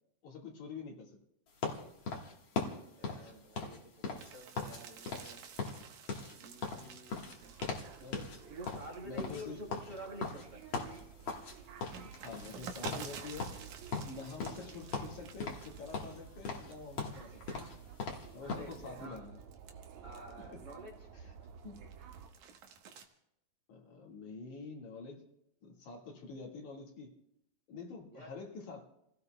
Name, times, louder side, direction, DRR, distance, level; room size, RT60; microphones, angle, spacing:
voice 1, 0.2-1.1 1.8-1.9 8.0-8.2 9.0-9.6 12.2-13.6 14.0-17.7 18.3-19.4 20.5-20.6 21.1-21.3 21.6-21.8 23.7-25.2 25.6-27.1 27.7-28.8, left 4 dB, 75° left, 0 dB, 3.2 m, -47 dB
sound 1, 1.6-4.8 5.1-5.3 5.6-7.9 8.1-8.4 8.7-11.5 11.8-12.6 12.8-13.1 13.4-14.7 14.9-15.7 15.9-18.7, left 4 dB, 50° left, 1.9 m, -39 dB
voice 2, 3.0-5.4 6.3-7.5 8.0-10.6 18.4-19.2 20.0-21.1 28.1-28.4, right 1 dB, 40° right, -2 dB, 2.1 m, -49 dB
sound 2, 4.2-10.1 10.5-16.4 16.7-17.2 17.8-21.1 21.5-23.1, right 6 dB, 90° right, 2.6 m, -51 dB
sound 3, 7.4-22.3, right 7 dB, 75° right, 2.1 m, -53 dB
30.0 x 16.5 x 2.2 m, 0.79 s
omnidirectional pair, 3.4 m